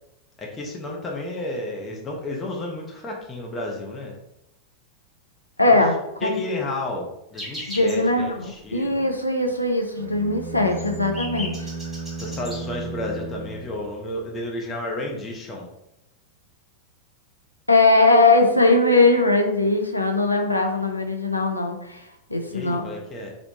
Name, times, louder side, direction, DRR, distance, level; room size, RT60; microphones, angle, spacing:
voice 1, 0.4-4.2 5.7-5.8 6.2-9.1 12.2-15.7 22.5-23.3, left 2 dB, 20° left, -1 dB, 0.6 m, -32 dB
voice 2, 5.6-6.0 6.2-6.4 7.7-11.7 17.7-22.8, left 2 dB, 85° left, 4 dB, 0.4 m, -20 dB
sound 1, 7.3-8.1 8.4-8.5 8.8-9.1 9.5-9.6 9.9-12.6 13.4-13.5 13.7-13.9, left 1 dB, 5° right, 1.2 m, -37 dB
sound 2, 10.0-14.3, right 3 dB, 65° right, 0.3 m, -35 dB
2.9 x 2.0 x 2.8 m, 0.84 s
figure-of-eight pair, 90°, 0 cm